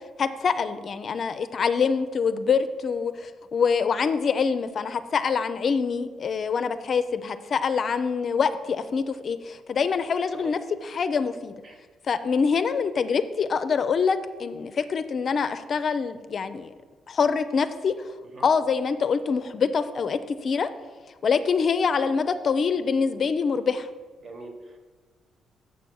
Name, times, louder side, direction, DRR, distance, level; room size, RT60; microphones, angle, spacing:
voice 1, 0.2-11.5 12.1-16.7 17.1-17.9 18.4-20.7 21.2-23.9, left 5 dB, 50° left, 11 dB, 0.4 m, -25 dB
voice 2, 24.2-24.8, right 2 dB, 45° right, 4 dB, 1.4 m, -42 dB
7.0 x 5.7 x 6.2 m, 1.4 s
cardioid pair, 90°, 0 cm